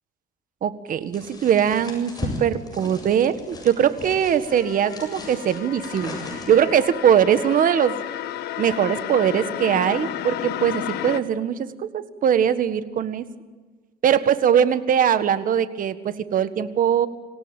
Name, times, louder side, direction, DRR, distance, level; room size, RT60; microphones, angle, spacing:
voice 1, 0.6-6.1 6.5-8.0 8.6-13.2 14.0-17.1, right 9 dB, 55° right, 12 dB, 1.7 m, -21 dB
sound 1, 1.1-6.8, left 2 dB, 25° left, 7.7 m, -37 dB
sound 2, 3.5-11.2, left 12 dB, 75° left, 1.4 m, -33 dB
26.0 x 17.5 x 9.1 m, 1.4 s
cardioid pair, 110°, 17 cm